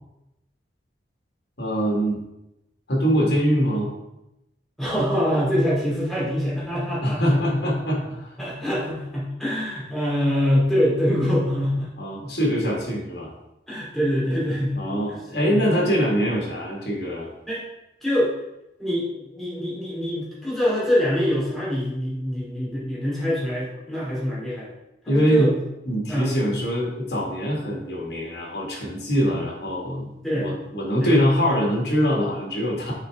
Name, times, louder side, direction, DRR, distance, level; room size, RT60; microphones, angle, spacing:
voice 1, 1.6-2.2 2.9-3.9 7.0-8.3 12.0-13.3 14.8-17.3 25.1-25.5 25.9-32.9, equal, 70° left, -2 dB, 1.9 m, -23 dB
voice 2, 4.8-7.2 8.4-11.9 13.7-14.8 15.1-15.2 15.5-15.6 17.5-17.6 18.0-18.3 18.8-24.7 25.0-25.5 26.1-26.3 30.2-30.5 31.0-31.2, equal, ahead, -8 dB, 2.4 m, -24 dB
6.8 x 4.5 x 3.6 m, 0.91 s
head